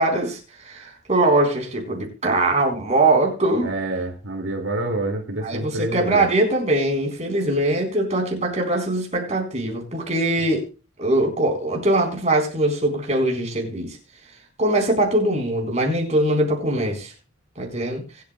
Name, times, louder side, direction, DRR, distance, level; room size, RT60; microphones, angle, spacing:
voice 1, 0.0-3.7 5.4-10.6 11.0-14.0 14.6-17.1 17.6-18.0, right 2 dB, 35° right, 1 dB, 4.2 m, -22 dB
voice 2, 3.6-6.2, right 2 dB, 70° right, 3 dB, 2.4 m, -27 dB
25.0 x 8.7 x 2.3 m, 0.32 s
head